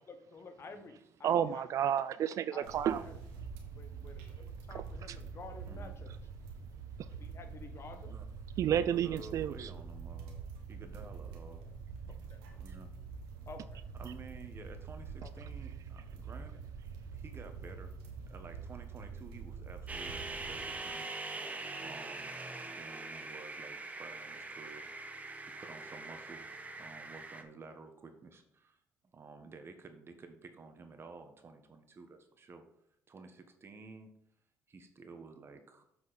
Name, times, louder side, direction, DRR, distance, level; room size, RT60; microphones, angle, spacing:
voice 1, 0.1-1.7 2.5-2.7 3.0-3.2 3.7-6.1 7.2-8.2 12.3-12.4 13.5-13.8 15.2-15.3, left 4 dB, 45° left, 7 dB, 1.4 m, -50 dB
voice 2, 1.2-3.0 8.6-9.7, right 9 dB, 60° right, 14 dB, 0.4 m, -30 dB
sound 1, 2.6-21.0, right 5 dB, 90° right, 1.5 m, -46 dB
voice 3, 2.9-3.2 5.7-6.0 8.1-8.2 8.9-11.6 12.6-12.9 14.0-16.6 17.1-18.0 18.3-21.4 21.8-22.4 22.6-24.9 25.6-26.5 26.8-28.8 29.1-32.6 33.1-34.1 34.7-35.9, right 4 dB, 40° right, 6 dB, 1.5 m, -52 dB
sound 2, 19.9-27.4, right 3 dB, 25° right, 1.1 m, -43 dB
7.6 x 5.9 x 4.3 m, 0.72 s
supercardioid pair, 65°, 6 cm